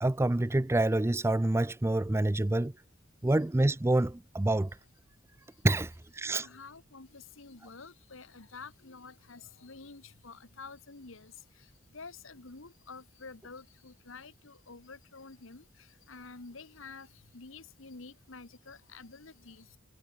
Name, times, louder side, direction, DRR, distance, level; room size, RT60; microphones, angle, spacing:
voice 1, 0.0-2.7 3.2-4.7 5.6-6.5, right 1 dB, 10° right, 0.4 m, -27 dB
voice 2, 6.4-19.8, left 4 dB, 70° left, 1.4 m, -49 dB
head